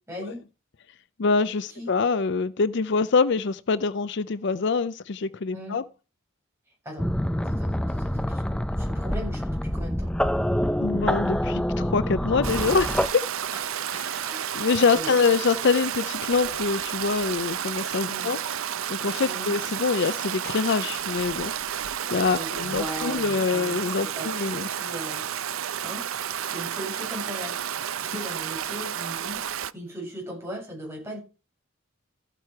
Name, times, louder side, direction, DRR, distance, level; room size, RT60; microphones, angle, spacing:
voice 1, 0.1-0.4 1.7-1.9 5.5-5.7 6.8-7.1 7.4-10.1 13.5-14.6 14.9-15.1 18.0-18.3 19.2-19.5 22.3-23.9 24.1-26.1 26.4-27.6 27.9-29.4 29.7-31.2, equal, 10° right, 7.7 m, -39 dB
voice 2, 1.2-5.8 10.8-13.3 13.9-14.3 14.5-18.4 18.9-21.5 22.1-24.7, left 4 dB, 55° left, 0.5 m, -25 dB
sound 1, 7.0-13.1, equal, 5° left, 0.5 m, -26 dB
Stream, 12.4-29.7, right 9 dB, 75° right, 0.6 m, -31 dB
14.0 x 9.1 x 4.7 m
head